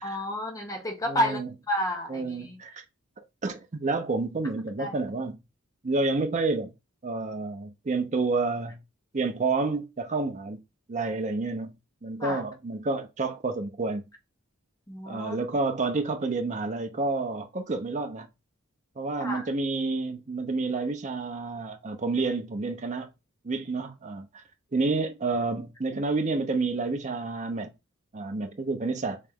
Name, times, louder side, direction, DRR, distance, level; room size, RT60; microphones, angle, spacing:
voice 1, 0.0-1.4 1.7-2.6 4.8-4.9 12.2-12.4 14.9-15.4 19.2-19.5, equal, 15° left, 0.8 m, -30 dB
voice 2, 1.1-1.5 2.1-2.8 3.2-5.4 5.8-6.7 7.0-8.8 9.1-10.6 10.9-11.7 12.0-14.0 15.1-18.3 19.0-23.1 23.4-24.4 24.7-27.7 28.1-29.2, right 3 dB, 35° right, 0.6 m, -29 dB
3.2 x 2.9 x 3.5 m
head